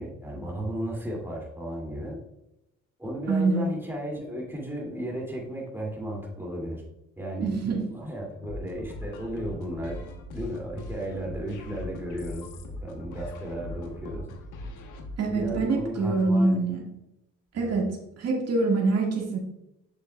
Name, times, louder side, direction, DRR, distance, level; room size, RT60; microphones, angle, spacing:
voice 1, 0.0-2.2 3.0-6.8 7.2-7.5 7.8-10.0 10.3-12.5 12.8-14.3 15.3-16.6 17.5-17.7, equal, 5° right, -2 dB, 2.6 m, -34 dB
voice 2, 3.3-3.6 7.4-7.8 15.2-16.8 17.5-17.9 18.2-19.4, right 3 dB, 55° right, -1 dB, 2.0 m, -25 dB
sound 1, 8.4-15.9, left 1 dB, 90° left, 1.2 m, -40 dB
7.8 x 6.7 x 2.4 m, 0.88 s
cardioid pair, 90°, 30 cm